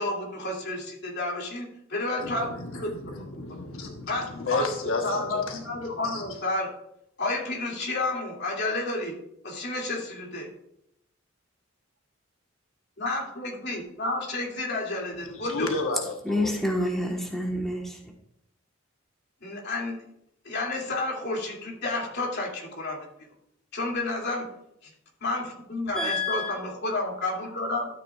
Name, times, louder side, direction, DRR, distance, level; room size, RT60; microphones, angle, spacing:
voice 1, 0.0-2.9 3.2-3.3 4.1-6.7 7.2-9.1 9.4-10.5 13.0-15.7 19.4-20.0 20.4-23.0 23.7-24.5 24.8-24.9 25.2-27.9, left 2 dB, 55° left, 2.6 m, -31 dB
voice 2, 2.2-4.1 4.4-5.6 6.1-6.2 15.4-16.5, left 3 dB, 75° left, 1.1 m, -32 dB
voice 3, 16.2-18.0 25.9-26.5, left 1 dB, ahead, 1.2 m, -28 dB
13.0 x 8.6 x 2.4 m
head